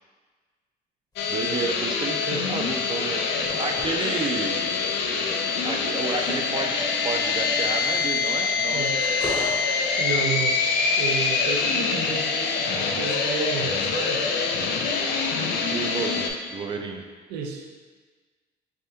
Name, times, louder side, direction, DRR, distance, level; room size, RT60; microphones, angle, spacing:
sound 1, 1.1-15.4 15.7-16.4, equal, 25° left, 0.8 m, -44 dB
sound 2, 1.2-16.3, left 4 dB, 80° left, 0.4 m, -25 dB
voice 1, 1.3-3.2 3.6-4.7 5.6-8.9 15.5-17.1, right 4 dB, 30° right, 3 dB, 0.4 m, -31 dB
voice 2, 10.0-10.6 11.0-14.2 17.3-17.7, right 5 dB, 80° right, 2 dB, 0.5 m, -31 dB
3.5 x 3.3 x 2.7 m, 1.4 s
cardioid pair, 110°, 17 cm